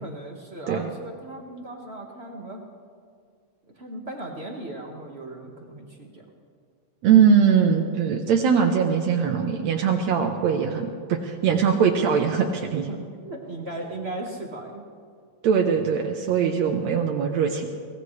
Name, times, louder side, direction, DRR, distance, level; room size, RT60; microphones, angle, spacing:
voice 1, 0.0-2.6 3.7-6.2 12.9-14.9, right 2 dB, 35° right, 0 dB, 1.0 m, -37 dB
voice 2, 7.0-12.9 15.4-17.7, right 7 dB, 75° right, 3 dB, 2.0 m, -21 dB
23.0 x 18.0 x 3.2 m, 2.1 s
omnidirectional pair, 3.3 m